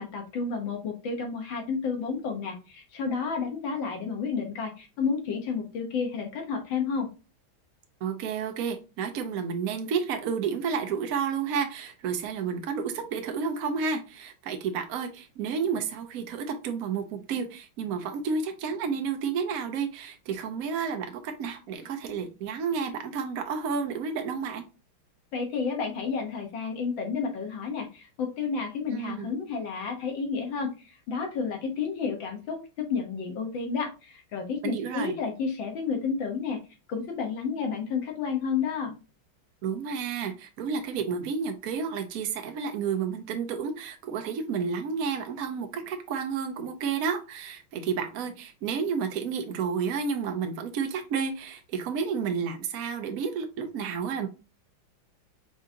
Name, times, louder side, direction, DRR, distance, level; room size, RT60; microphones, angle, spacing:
voice 1, 0.0-7.1 25.3-36.6 36.9-39.0, left 5 dB, 70° left, 1.8 m, -31 dB
voice 2, 8.0-24.7 28.9-29.3 34.6-35.1 39.6-54.3, right 6 dB, 70° right, 0.8 m, -31 dB
4.7 x 3.8 x 2.7 m
omnidirectional pair, 2.3 m